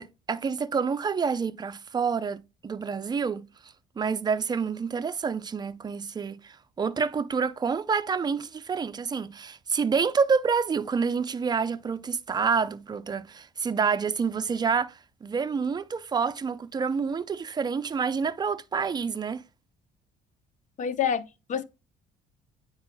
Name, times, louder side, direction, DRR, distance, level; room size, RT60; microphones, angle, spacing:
voice 1, 0.0-19.4, right 5 dB, 25° right, 0.5 m, -28 dB
voice 2, 20.8-21.6, left 8 dB, 45° left, 0.8 m, -28 dB
9.4 x 4.8 x 2.2 m
cardioid pair, 110°, 17 cm